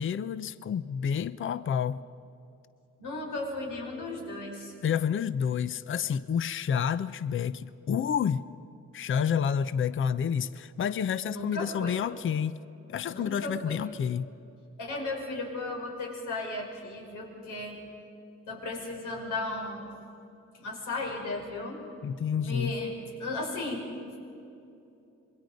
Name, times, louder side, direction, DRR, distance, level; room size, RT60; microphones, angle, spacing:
voice 1, 0.0-2.0 4.8-8.4 8.9-12.6 12.9-14.3 22.0-22.7, left 7 dB, 40° left, 14 dB, 0.7 m, -29 dB
voice 2, 3.0-4.7 11.3-12.0 13.1-13.8 14.8-17.8 18.5-19.9 20.6-21.8 22.4-24.1, left 2 dB, 80° left, 0 dB, 5.6 m, -35 dB
27.0 x 23.0 x 5.3 m, 2.8 s
cardioid pair, 90°, 30 cm